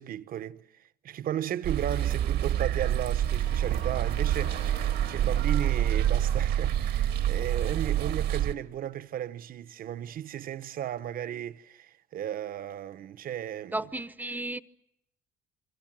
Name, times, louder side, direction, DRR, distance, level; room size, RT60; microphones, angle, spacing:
voice 1, 0.0-13.8, right 10 dB, 60° right, 1.2 m, -35 dB
sound 1, 1.6-8.5, right 11 dB, 75° right, 1.8 m, -27 dB
Wind instrument woodwind instrument, 2.3-6.6, left 7 dB, 70° left, 3.3 m, -52 dB
voice 2, 13.7-14.6, right 2 dB, 10° right, 1.0 m, -33 dB
27.5 x 23.5 x 7.8 m
cardioid pair, 110°, 17 cm